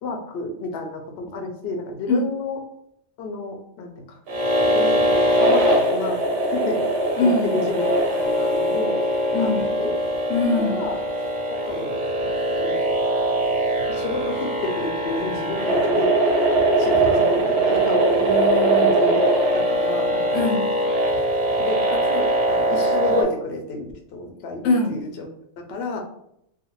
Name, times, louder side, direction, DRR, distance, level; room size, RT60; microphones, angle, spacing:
voice 1, 0.0-2.6 3.2-4.2 4.7-6.2 6.5-6.8 7.2-9.0 9.4-9.9 10.3-11.0 11.5-11.9 12.2-12.7 13.9-16.1 16.8-18.0 18.7-19.2 19.5-20.4 21.6-25.3 25.6-26.0, left 3 dB, 65° left, 3 dB, 0.7 m, -30 dB
sound 1, 4.3-23.2, right 1 dB, 60° right, 0.8 m, -21 dB
voice 2, 7.2-7.6 9.3-9.7 10.3-10.8 18.1-19.2 20.3-20.7 24.6-25.0, left 3 dB, 85° left, 1 dB, 1.0 m, -23 dB
2.5 x 2.2 x 3.0 m, 0.73 s
omnidirectional pair, 1.3 m